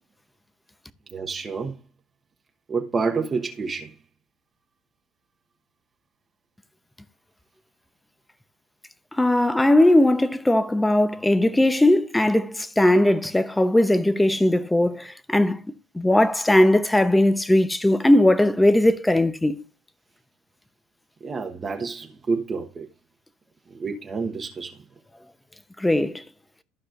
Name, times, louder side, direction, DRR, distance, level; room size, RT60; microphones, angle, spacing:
voice 1, 1.1-1.8 2.7-3.9 21.2-22.9 23.7-24.7, right 4 dB, 30° right, 1.2 m, -28 dB
voice 2, 9.2-15.6 15.9-19.6 25.8-26.2, left 1 dB, 10° left, 0.8 m, -19 dB
14.5 x 4.9 x 2.5 m
hypercardioid pair, 85°, 0 cm